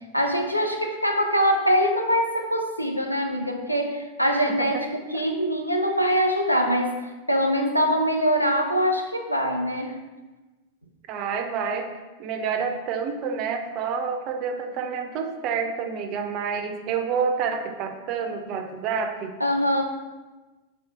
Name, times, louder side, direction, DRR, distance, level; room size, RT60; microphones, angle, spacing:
voice 1, 0.1-7.0 7.3-10.0 19.4-19.8, equal, 90° left, 3 dB, 0.4 m, -23 dB
voice 2, 4.3-4.8 11.1-11.9 12.2-19.3, right 6 dB, 40° right, 5 dB, 0.4 m, -28 dB
4.5 x 2.0 x 4.6 m, 1.2 s
figure-of-eight pair, 90°, 0 cm